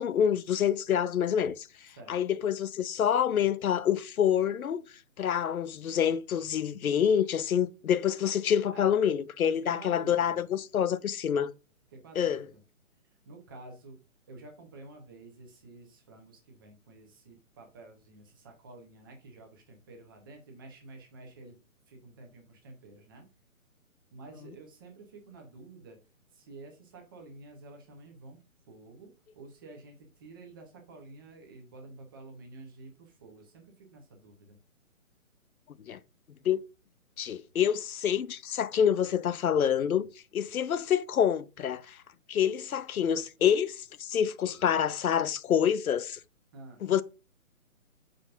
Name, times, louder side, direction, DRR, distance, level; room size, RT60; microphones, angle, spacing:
voice 1, 0.0-1.7 2.1-4.8 5.2-11.5 12.2-12.4 35.9-36.0 36.4-36.6 37.2-42.0 42.3-46.2 46.8-47.0, left 8 dB, 85° left, 0.7 m, -27 dB
voice 2, 9.4-10.4 11.9-12.6 13.2-14.0 14.3-21.5 21.9-23.3 24.1-26.0 26.3-28.4 28.7-34.6 46.5-46.8, right 2 dB, 15° right, 1.0 m, -50 dB
7.2 x 5.2 x 2.5 m
hypercardioid pair, 165°, 41 cm